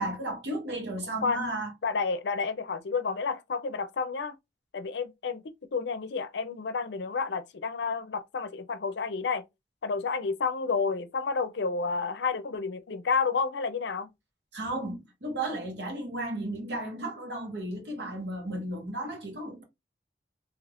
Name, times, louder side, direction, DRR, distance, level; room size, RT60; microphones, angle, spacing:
voice 1, 0.0-1.7 14.5-19.6, right 1 dB, 75° right, 1.3 m, -34 dB
voice 2, 1.8-4.3 4.7-5.4 5.7-9.4 9.8-14.1, left 5 dB, 75° left, 0.5 m, -30 dB
2.8 x 2.4 x 3.4 m
head